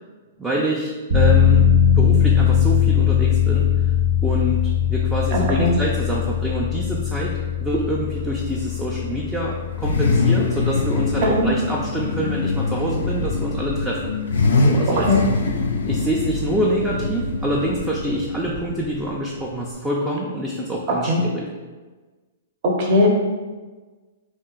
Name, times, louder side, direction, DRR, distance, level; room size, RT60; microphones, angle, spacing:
voice 1, 0.4-1.7 2.0-3.9 4.2-14.1 14.6-15.1 15.8-21.4, right 1 dB, 10° right, -4 dB, 0.4 m, -26 dB
sound 1, 1.1-13.6 14.0-14.1, left 8 dB, 80° right, 1.1 m, -20 dB
voice 2, 5.3-5.7 11.2-11.5 15.0-15.2 21.0-21.2 22.6-23.2, left 1 dB, 45° right, -1 dB, 0.8 m, -19 dB
Car / Idling / Accelerating revving vroom, 7.7-19.7, left 3 dB, 80° left, 0.4 m, -24 dB
2.6 x 2.2 x 3.8 m, 1.3 s
hypercardioid pair, 130°, 0 cm